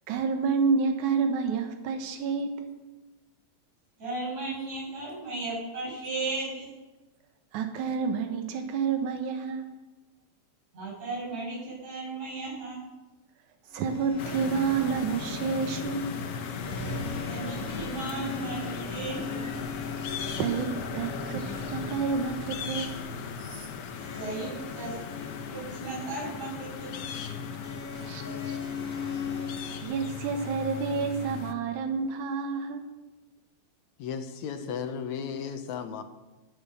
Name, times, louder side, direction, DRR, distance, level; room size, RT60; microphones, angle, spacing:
voice 1, 0.1-2.7 7.5-9.7 13.7-16.2 20.3-23.0 28.0-28.6 29.8-33.0 34.6-34.7, right 5 dB, 90° right, 6 dB, 2.6 m, -29 dB
voice 2, 4.0-6.7 10.7-12.8 17.3-19.5 23.4-23.7 24.1-25.0 25.5-26.9, right 3 dB, 65° right, -6 dB, 8.3 m, -35 dB
sound 1, 13.7-29.8, left 4 dB, 30° left, 2.1 m, -40 dB
sound 2, 14.2-31.5, left 6 dB, 60° left, 1.8 m, -37 dB
sound 3, 17.2-23.1, left 1 dB, 25° right, 3.8 m, -49 dB
voice 3, 34.0-36.0, left 7 dB, 75° left, 8 dB, 2.3 m, -35 dB
21.5 x 8.2 x 6.8 m, 1.1 s
omnidirectional pair, 3.4 m